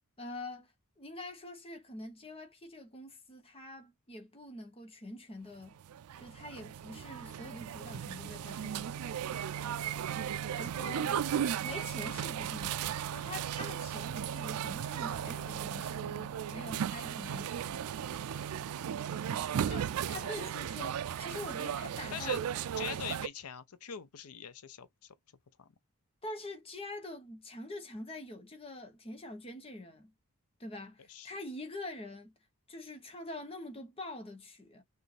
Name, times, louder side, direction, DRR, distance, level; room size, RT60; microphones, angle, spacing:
voice 1, 0.2-0.7 1.0-5.8 6.2-9.0 10.5-11.2 11.6-18.0 19.7-22.4 26.2-30.1 30.6-32.3 32.7-34.8, left 1 dB, 25° left, 1.1 m, -45 dB
sound 1, 5.7-23.3, right 9 dB, 85° right, 0.4 m, -36 dB
voice 2, 20.1-20.5 22.1-22.4 22.8-25.1 25.6-25.7 31.1-31.3, left 8 dB, 90° left, 0.6 m, -43 dB
6.1 x 2.6 x 3.3 m
head